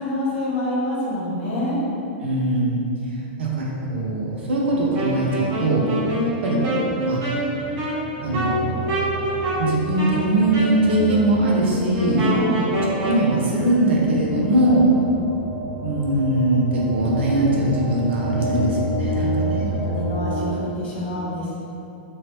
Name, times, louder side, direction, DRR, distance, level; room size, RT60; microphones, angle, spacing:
voice 1, 0.0-1.8 12.3-12.6 18.4-18.7 19.1-21.6, left 1 dB, 75° left, -6 dB, 1.2 m, -27 dB
voice 2, 2.2-2.8 3.4-5.8 6.4-6.8 7.1-7.2 8.2-8.9 9.6-12.3 13.0-14.8 15.8-18.7 19.0-19.7, right 1 dB, 90° right, -3 dB, 0.7 m, -21 dB
sound 1, 4.8-20.5, equal, 10° left, 0.6 m, -31 dB
Wind instrument woodwind instrument, 4.9-13.3, equal, 35° right, 0.9 m, -26 dB
3.0 x 2.7 x 3.1 m, 2.8 s
supercardioid pair, 155°, 6 cm